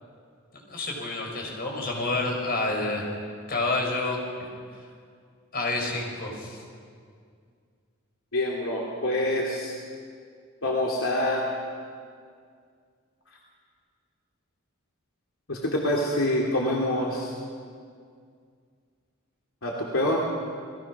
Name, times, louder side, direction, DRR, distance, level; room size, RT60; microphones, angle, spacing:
voice 1, 0.7-3.2 3.5-4.2 5.5-6.6, left 2 dB, 50° left, 1 dB, 5.3 m, -28 dB
voice 2, 8.3-9.7 10.6-11.5 15.5-17.3 19.6-20.2, left 1 dB, 75° left, -2 dB, 2.9 m, -26 dB
30.0 x 20.0 x 6.1 m, 2.2 s
head